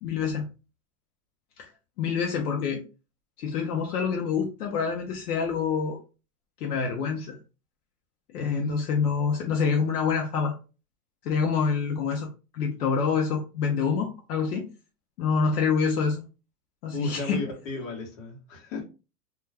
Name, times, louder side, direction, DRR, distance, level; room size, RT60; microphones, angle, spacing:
voice 1, 0.0-0.5 1.6-1.7 2.0-2.8 3.4-6.0 6.6-7.4 8.3-10.5 11.2-14.7 15.2-16.2 16.8-17.4, left 5 dB, 80° left, 0.7 m, -26 dB
voice 2, 16.9-18.8, left 2 dB, 55° left, 1.0 m, -34 dB
2.3 x 2.2 x 3.2 m
supercardioid pair, 170°, 46 cm